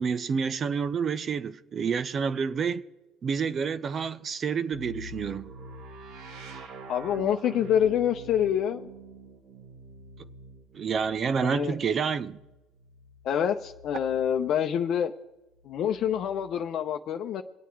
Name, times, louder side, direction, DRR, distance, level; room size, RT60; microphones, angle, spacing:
voice 1, 0.0-2.8 3.2-5.5 10.7-12.4, right 6 dB, 45° right, 0.6 m, -28 dB
sound 1, 4.7-14.5 15.5-16.6, right 2 dB, 75° right, 2.2 m, -46 dB
voice 2, 6.9-8.9 11.4-11.8 13.2-15.1 15.7-17.4, left 9 dB, 60° left, 0.7 m, -26 dB
23.5 x 8.4 x 4.6 m
supercardioid pair, 85°, 0 cm